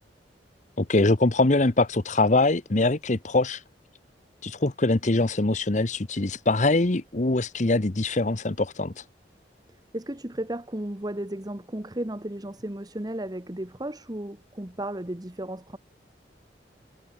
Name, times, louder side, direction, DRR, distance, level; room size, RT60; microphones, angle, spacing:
voice 1, 0.8-3.6 4.4-9.0, left 2 dB, 45° left, 1.1 m, -23 dB
voice 2, 9.9-15.8, right 1 dB, 20° right, 1.4 m, -34 dB
head